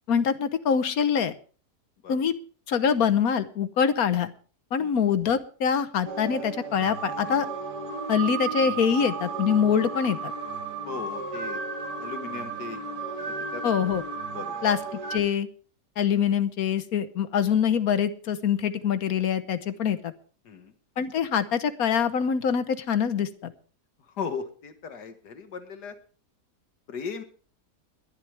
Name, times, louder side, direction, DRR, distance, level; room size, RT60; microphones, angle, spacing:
voice 1, 0.1-1.3 2.1-2.3 2.7-4.3 4.7-7.5 8.1-10.2 13.6-14.0 14.6-14.8 15.1-15.5 16.0-20.1 21.0-23.5, left 7 dB, 65° left, 12 dB, 1.4 m, -24 dB
sound 1, 6.1-15.2, right 4 dB, 75° right, 3.4 m, -34 dB
voice 2, 10.9-11.6 12.0-12.8 13.5-13.6 14.3-14.5 20.5-20.7 24.2-25.9 26.9-27.2, left 5 dB, 80° left, 8 dB, 2.1 m, -37 dB
21.5 x 11.0 x 3.4 m, 0.39 s
omnidirectional pair, 1.7 m